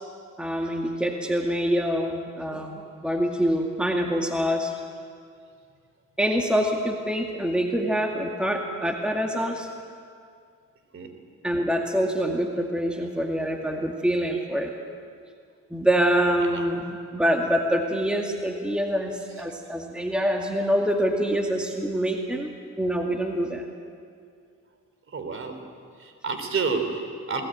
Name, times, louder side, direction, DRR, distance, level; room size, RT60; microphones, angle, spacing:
voice 1, 0.4-4.8 6.2-9.7 11.4-14.7 15.7-23.6, equal, 5° right, 1 dB, 2.1 m, -25 dB
voice 2, 25.1-25.6 26.0-27.4, right 4 dB, 45° right, 6 dB, 3.6 m, -29 dB
21.0 x 19.0 x 9.2 m, 2.2 s
cardioid pair, 90°, 30 cm